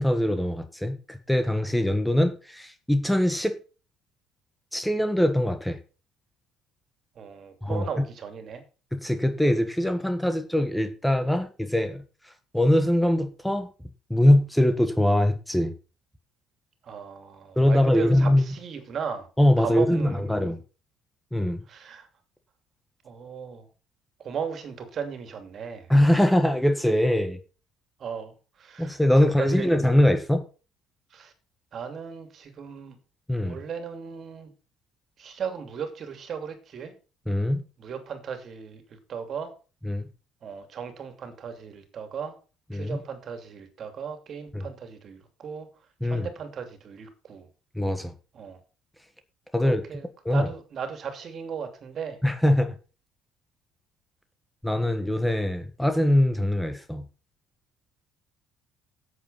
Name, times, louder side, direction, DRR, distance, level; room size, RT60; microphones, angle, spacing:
voice 1, 0.0-3.6 4.7-5.8 7.6-7.9 8.9-13.7 14.1-15.7 17.6-18.4 19.4-20.6 21.3-21.6 25.9-27.4 28.8-30.4 33.3-33.6 37.3-37.6 39.8-40.1 42.7-43.0 44.5-44.6 46.0-46.3 47.7-48.1 49.5-49.8 50.2-50.5 52.2-52.7 54.6-57.0, left 1 dB, 5° left, 1.4 m, -22 dB
voice 2, 7.1-8.6 16.8-19.3 19.6-20.5 21.7-22.1 23.0-23.7 24.2-26.2 28.0-29.0 29.4-29.9 31.1-31.3 31.7-33.0 33.4-34.5 35.2-36.9 37.8-39.5 40.4-42.4 42.7-45.7 46.0-47.5 48.3-48.6 49.6-50.1 50.3-52.2, right 6 dB, 50° right, 2.7 m, -36 dB
8.4 x 8.1 x 5.6 m
supercardioid pair, 85°, 0 cm